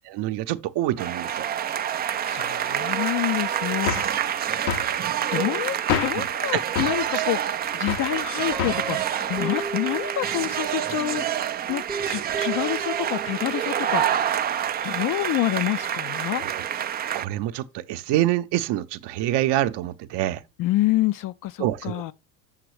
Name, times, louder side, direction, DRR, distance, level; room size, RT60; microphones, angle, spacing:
voice 1, 0.1-1.5 4.2-4.3 6.2-6.3 6.5-6.9 7.1-7.2 16.3-16.6 17.1-20.4 21.6-22.0, right 14 dB, 55° right, 0.7 m, -26 dB
sound 1, 1.0-17.2, right 10 dB, 25° right, 0.3 m, -27 dB
voice 2, 1.9-4.2 5.3-11.3 11.7-14.3 14.8-16.4 20.6-22.1, left 15 dB, 45° left, 0.5 m, -28 dB
sound 2, 3.9-4.2 4.7-4.9 5.9-6.3 6.8-7.0 7.9-8.1 8.6-8.9, left 8 dB, 70° left, 0.9 m, -27 dB
Guitar, 8.5-11.0 11.7-13.6, right 3 dB, 5° right, 0.7 m, -36 dB
7.3 x 6.0 x 3.2 m
hypercardioid pair, 70°, 48 cm